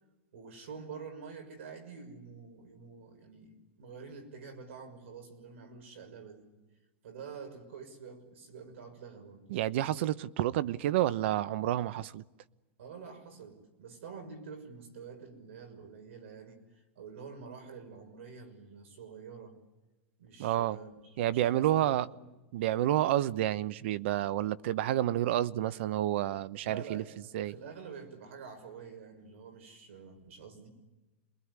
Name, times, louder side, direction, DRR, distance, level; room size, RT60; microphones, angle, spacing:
voice 1, 0.3-6.5 7.0-9.4 12.8-19.6 20.2-22.3 26.6-27.1 27.5-30.7, right 5 dB, 85° right, 6.1 m, -47 dB
voice 2, 9.5-12.2 20.4-20.8 21.2-22.1 22.5-27.0 27.3-27.5, right 13 dB, 70° right, 0.9 m, -29 dB
28.0 x 21.5 x 9.7 m
supercardioid pair, 145°, 7 cm